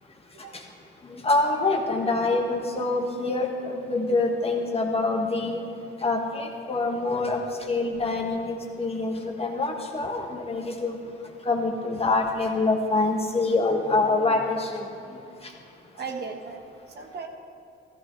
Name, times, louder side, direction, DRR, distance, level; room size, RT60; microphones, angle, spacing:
voice 1, 1.0-5.6 6.0-7.4 7.7-11.0 11.4-15.5, left 3 dB, 30° left, 1 dB, 1.6 m, -26 dB
voice 2, 15.9-17.3, right 5 dB, 55° right, 3 dB, 1.3 m, -36 dB
14.5 x 13.0 x 3.2 m, 2.7 s
cardioid pair, 90°, 20 cm